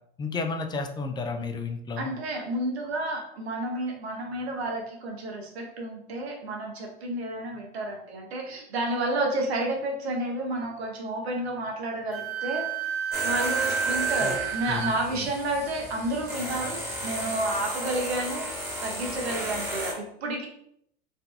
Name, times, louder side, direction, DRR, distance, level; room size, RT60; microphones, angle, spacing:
voice 1, 0.2-2.1 14.2-14.3 14.7-15.3, left 4 dB, 15° left, 5 dB, 0.3 m, -32 dB
voice 2, 2.0-12.7 13.2-18.5 18.8-20.5, right 1 dB, 85° right, 0 dB, 1.0 m, -31 dB
Wind instrument woodwind instrument, 12.1-14.9, right 7 dB, 45° right, 0.5 m, -29 dB
sound 1, 13.1-19.9, equal, 10° right, 1.3 m, -34 dB
3.9 x 2.6 x 2.3 m, 0.70 s
hypercardioid pair, 95°, 32 cm